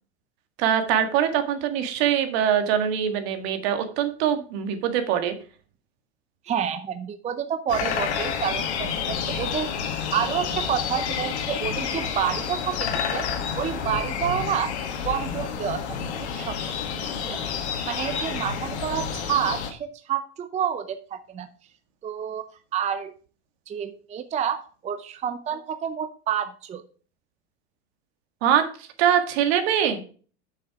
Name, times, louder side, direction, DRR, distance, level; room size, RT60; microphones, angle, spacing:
voice 1, 0.6-5.3 28.4-30.0, right 9 dB, 65° right, 7 dB, 1.8 m, -23 dB
voice 2, 6.5-13.3 13.6-14.7 15.0-15.8 16.3-16.7 17.2-17.4 17.9-21.5 22.0-22.5 22.7-23.1 23.7-26.8, right 9 dB, 20° right, 11 dB, 0.6 m, -29 dB
sound 1, 7.7-19.7, left 7 dB, 85° left, 1.8 m, -29 dB
7.7 x 6.6 x 4.8 m, 0.40 s
supercardioid pair, 120°, 33 cm